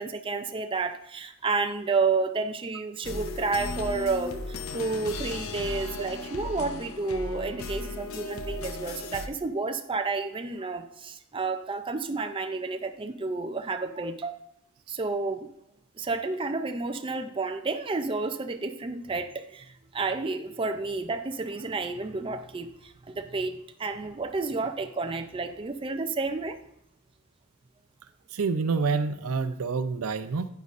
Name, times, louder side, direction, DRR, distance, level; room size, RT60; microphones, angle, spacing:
voice 1, 0.0-14.4 14.9-15.5 16.0-26.6, right 3 dB, 25° right, 7 dB, 0.4 m, -31 dB
sound 1, 3.0-9.3, left 2 dB, 70° left, 0.7 m, -36 dB
voice 2, 28.3-30.5, right 4 dB, 85° right, 12 dB, 0.5 m, -27 dB
9.6 x 9.3 x 2.5 m, 0.78 s
head